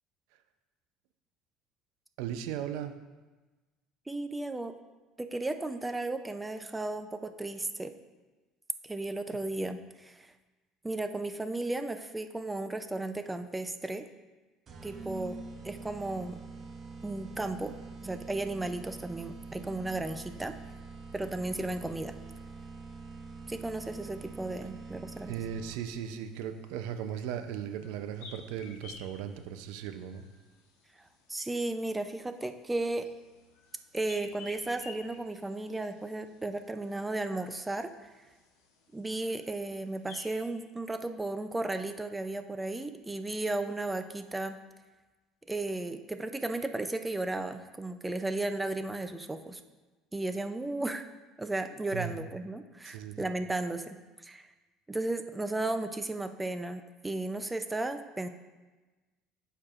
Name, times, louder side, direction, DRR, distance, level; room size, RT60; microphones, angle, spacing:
voice 1, 2.2-2.9 25.3-30.3 51.9-52.1 52.8-53.3, right 9 dB, 80° right, 8 dB, 0.5 m, -37 dB
voice 2, 4.1-4.8 5.2-7.9 8.8-10.3 10.8-14.1 14.8-15.4 15.6-16.4 17.0-17.7 18.0-20.5 21.1-22.1 23.5-25.3 31.3-33.1 33.9-37.9 38.9-44.6 45.5-49.6 50.1-51.1 51.4-54.4 54.9-58.3, right 2 dB, 10° right, 8 dB, 0.5 m, -34 dB
sound 1, 14.7-26.0, right 4 dB, 40° right, 0.9 m, -45 dB
sound 2, 26.0-40.5, left 4 dB, 90° left, 1.1 m, -55 dB
12.0 x 4.5 x 2.5 m, 1.2 s
supercardioid pair, 105°, 0 cm